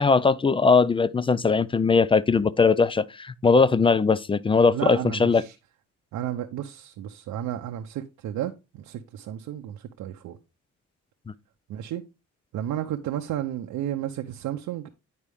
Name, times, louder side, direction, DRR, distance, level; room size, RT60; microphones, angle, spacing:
voice 1, 0.0-5.4, left 4 dB, 20° left, 0.3 m, -20 dB
voice 2, 4.7-5.5 6.1-10.4 11.7-12.0 12.5-14.9, right 11 dB, 80° right, 0.7 m, -32 dB
9.7 x 4.4 x 3.4 m
cardioid pair, 90°, 30 cm